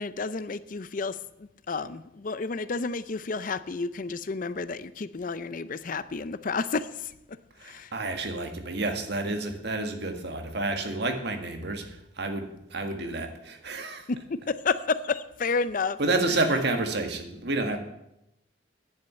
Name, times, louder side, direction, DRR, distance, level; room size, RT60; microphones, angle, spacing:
voice 1, 0.0-7.9 14.1-16.0, left 4 dB, 45° left, 0.5 m, -31 dB
voice 2, 7.6-14.1 16.0-17.8, right 2 dB, 60° right, 1.7 m, -29 dB
10.5 x 7.4 x 9.3 m
head